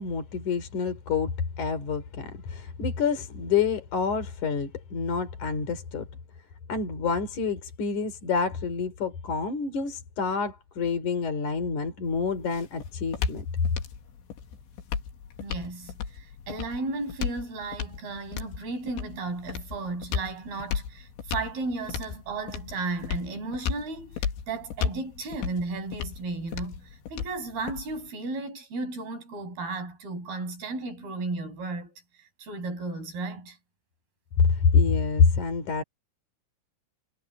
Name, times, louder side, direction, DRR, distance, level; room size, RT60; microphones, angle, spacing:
voice 1, 0.0-6.1 6.7-13.5 34.5-35.8, left 5 dB, 45° left, 4.2 m, -27 dB
sound 1, 12.1-28.1, left 7 dB, 80° left, 4.7 m, -35 dB
voice 2, 15.4-33.6, right 3 dB, 55° right, 9.6 m, -34 dB
omnidirectional pair, 5.2 m